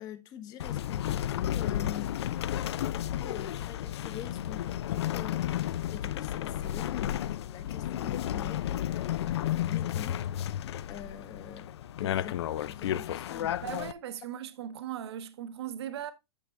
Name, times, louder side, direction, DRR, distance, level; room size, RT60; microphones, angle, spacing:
voice 1, 0.0-2.2 3.1-10.6 10.9-13.8, left 10 dB, 30° left, 0.9 m, -45 dB
sound 1, 0.6-13.9, left 11 dB, 80° left, 0.5 m, -32 dB
voice 2, 13.6-16.1, right 10 dB, 75° right, 1.0 m, -38 dB
8.7 x 6.5 x 3.3 m
supercardioid pair, 155°, 14 cm